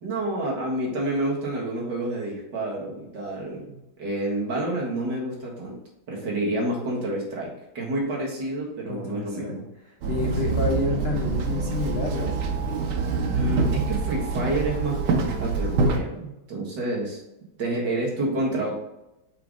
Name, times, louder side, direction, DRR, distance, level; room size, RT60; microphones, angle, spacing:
voice 1, 0.0-5.8 6.1-9.7 10.4-10.6 13.3-17.2 17.6-18.7, right 1 dB, 55° right, -2 dB, 2.2 m, -29 dB
voice 2, 8.9-9.6 10.1-12.3, left 3 dB, 50° left, -1 dB, 0.7 m, -28 dB
Walk footsteps / Chatter / Hiss, 10.0-16.0, right 4 dB, 80° right, 1.8 m, -25 dB
5.7 x 5.0 x 3.8 m, 0.92 s
omnidirectional pair, 2.3 m